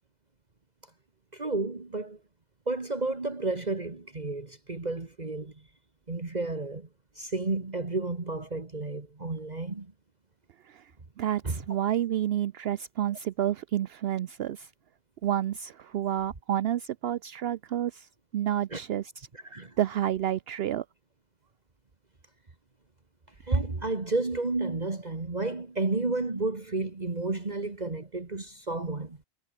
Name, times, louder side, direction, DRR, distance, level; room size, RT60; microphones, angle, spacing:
voice 1, 1.3-2.2 2.7-5.5 6.1-6.9 7.2-9.9 11.4-11.6 18.7-18.8 19.3-19.8 23.4-29.2, right 3 dB, 40° right, 2.0 m, -31 dB
voice 2, 11.2-14.7 15.2-18.1 18.3-19.0 19.8-20.8, right 11 dB, 65° right, 0.8 m, -29 dB
omnidirectional pair, 1.1 m